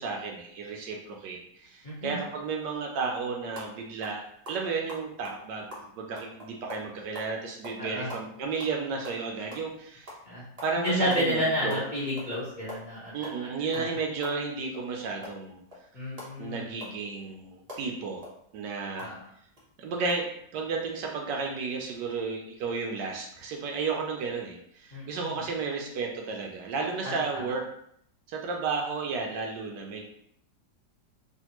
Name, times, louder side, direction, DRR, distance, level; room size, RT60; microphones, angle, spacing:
voice 1, 0.0-5.7 6.0-10.1 10.6-11.8 13.1-15.6 16.4-18.3 18.5-19.1 19.8-27.6 28.3-30.0, right 4 dB, 75° right, 1 dB, 1.1 m, -33 dB
voice 2, 1.8-2.2 7.8-8.1 10.3-10.4 10.8-13.1 13.4-13.8 15.9-16.7 19.0-19.3 24.9-25.5 27.0-27.2, equal, 40° left, -8 dB, 0.6 m, -31 dB
sound 1, 3.5-3.7 4.0-4.2 4.4-7.3 7.6-7.8 8.1-9.7 10.1-10.2 10.6-10.7 11.1-11.3 11.5-12.3 12.6-14.9 15.2-19.1 19.6-19.7 20.0-20.1, left 1 dB, 50° right, 0.4 m, -44 dB
3.3 x 2.5 x 2.9 m, 0.70 s
omnidirectional pair, 2.1 m